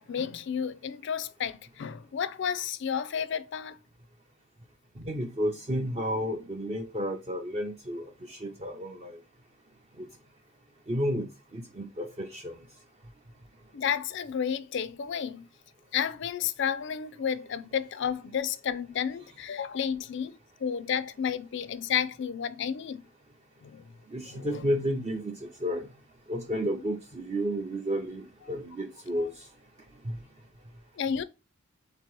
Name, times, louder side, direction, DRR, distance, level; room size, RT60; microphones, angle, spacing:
voice 1, 0.0-3.8 13.7-15.4 15.9-20.4 20.6-23.0 23.6-23.8 24.3-24.6 29.2-29.3 31.0-31.2, left 8 dB, 55° left, 0.4 m, -31 dB
voice 2, 5.1-8.0 8.3-9.1 10.9-11.2 11.5-12.5 24.1-25.3 25.6-25.8 26.3-29.3 30.1-30.2, equal, 30° right, 0.5 m, -31 dB
3.8 x 2.9 x 4.5 m
head